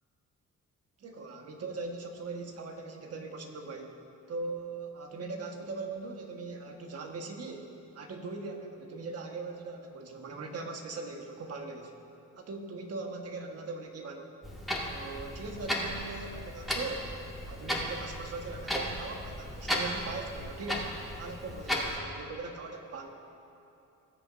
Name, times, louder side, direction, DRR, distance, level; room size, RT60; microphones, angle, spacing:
voice 1, 1.0-4.0 4.3-11.9 12.4-14.3 14.8-17.2 17.4-20.9 21.2-23.1, right 3 dB, 55° right, 3 dB, 1.4 m, -40 dB
Clock, 14.4-22.0, equal, ahead, 2.0 m, -35 dB
19.5 x 8.1 x 2.6 m, 2.8 s
cardioid pair, 90°, 30 cm